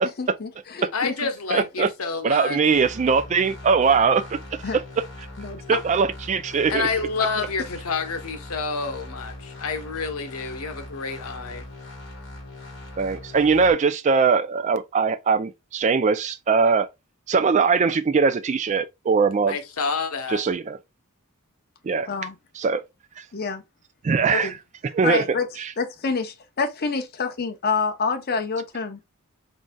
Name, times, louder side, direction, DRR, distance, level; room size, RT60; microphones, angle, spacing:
voice 1, 0.2-1.3 4.6-4.8 5.4-5.8 7.2-7.5 22.1-22.4 23.3-23.6 24.3-24.5 25.0-25.5 25.8-29.0, left 4 dB, 45° left, 0.7 m, -27 dB
voice 2, 0.9-2.6 6.7-11.6 19.5-20.4, left 4 dB, 85° left, 0.9 m, -28 dB
voice 3, 1.5-1.9 2.2-4.4 5.7-6.9 13.0-16.9 17.3-19.6 20.3-20.8 21.8-22.1 22.6-22.8 24.0-24.5 24.9-25.2 25.6-25.7, right 5 dB, 35° right, 0.3 m, -21 dB
sound 1, 2.7-13.7, left 1 dB, 60° left, 1.8 m, -40 dB
3.9 x 3.7 x 2.2 m
head